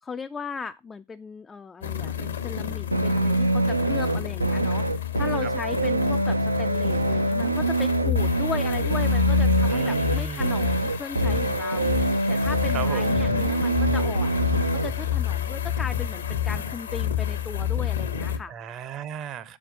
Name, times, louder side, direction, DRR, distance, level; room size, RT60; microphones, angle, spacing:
voice 1, 0.0-14.5 14.7-18.5, left 5 dB, 15° left, 0.3 m, -37 dB
sound 1, 1.8-18.4, left 10 dB, 70° left, 0.9 m, -29 dB
sound 2, 2.9-14.9, right 2 dB, 85° right, 0.4 m, -24 dB
voice 2, 9.6-10.5 12.7-13.2 18.5-19.6, right 9 dB, 35° right, 0.6 m, -35 dB
7.1 x 4.5 x 5.0 m
figure-of-eight pair, 90°, 0 cm